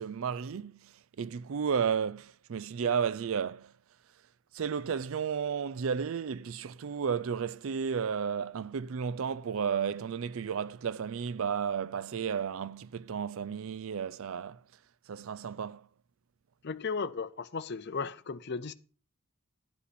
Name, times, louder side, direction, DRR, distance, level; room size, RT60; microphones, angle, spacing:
voice 1, 0.0-3.7 4.5-14.6 15.1-15.9, right 7 dB, 60° right, 0.4 m, -33 dB
voice 2, 16.6-18.7, left 5 dB, 50° left, 0.6 m, -35 dB
11.5 x 8.2 x 4.2 m
head